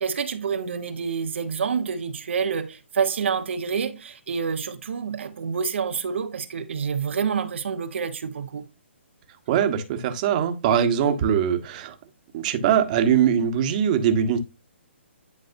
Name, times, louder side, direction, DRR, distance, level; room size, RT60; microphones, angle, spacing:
voice 1, 0.0-8.7, right 6 dB, 65° right, 1.1 m, -28 dB
voice 2, 9.5-11.9 12.3-14.4, right 8 dB, 40° right, 1.4 m, -22 dB
10.5 x 4.7 x 2.7 m
hypercardioid pair, 140°, 7 cm